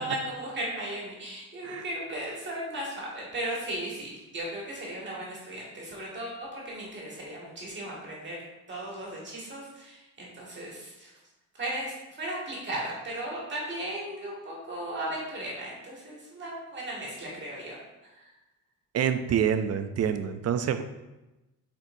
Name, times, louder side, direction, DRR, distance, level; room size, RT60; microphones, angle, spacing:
voice 1, 0.0-8.4 8.7-11.1 11.5-17.8 18.0-18.3, right 1 dB, 35° right, -5 dB, 1.9 m, -36 dB
voice 2, 18.9-20.8, right 8 dB, 50° right, 10 dB, 0.4 m, -27 dB
7.9 x 4.5 x 2.6 m, 1.0 s
wide cardioid pair, 175°, 33 cm